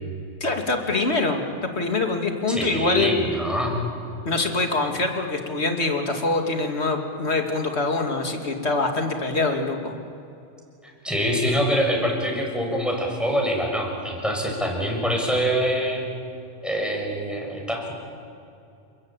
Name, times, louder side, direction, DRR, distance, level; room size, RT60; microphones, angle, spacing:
voice 1, 0.4-3.1 4.2-9.9, left 3 dB, 70° left, 3 dB, 2.8 m, -24 dB
voice 2, 2.5-3.7 11.0-16.1 16.6-17.9, equal, ahead, 0 dB, 6.4 m, -25 dB
29.5 x 21.0 x 9.0 m, 2.6 s
omnidirectional pair, 1.2 m